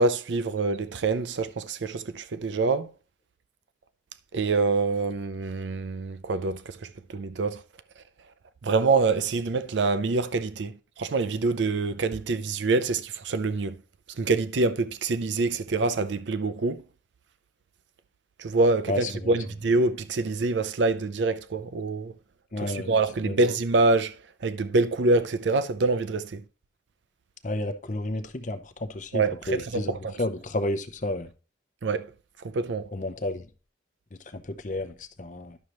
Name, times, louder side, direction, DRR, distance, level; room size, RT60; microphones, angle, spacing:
voice 1, 0.0-2.9 4.3-6.8 7.1-7.6 8.6-13.7 14.2-16.8 18.4-22.1 22.7-24.1 24.4-26.4 29.1-30.2 31.8-32.1 32.5-32.8, right 3 dB, 80° right, 0.5 m, -25 dB
voice 2, 18.9-19.3 22.5-22.9 23.3-23.4 27.4-31.3 32.9-33.4 34.3-35.6, left 1 dB, 45° left, 0.7 m, -31 dB
11.0 x 6.4 x 3.0 m
head